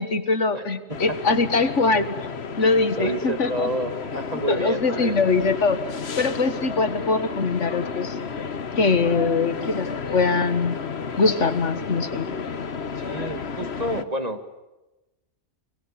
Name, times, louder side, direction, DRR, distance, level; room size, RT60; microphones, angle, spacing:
voice 1, 0.0-2.2 2.6-3.7 4.5-5.8 6.2-8.2 8.8-9.9 10.1-10.8 11.2-12.3, left 4 dB, 75° left, 11 dB, 2.0 m, -22 dB
sound 1, 0.9-14.0, left 5 dB, 60° left, 1.5 m, -32 dB
voice 2, 2.9-5.2 13.0-14.4, right 1 dB, 30° right, 8 dB, 2.1 m, -29 dB
29.5 x 23.5 x 8.5 m, 1.0 s
omnidirectional pair, 1.3 m